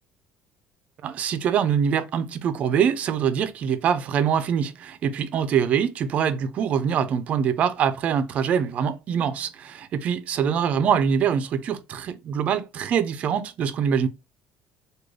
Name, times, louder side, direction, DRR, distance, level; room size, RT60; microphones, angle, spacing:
voice 1, 1.0-14.1, right 7 dB, 35° right, 0.4 m, -24 dB
3.1 x 2.2 x 3.6 m
cardioid pair, 170°, 4 cm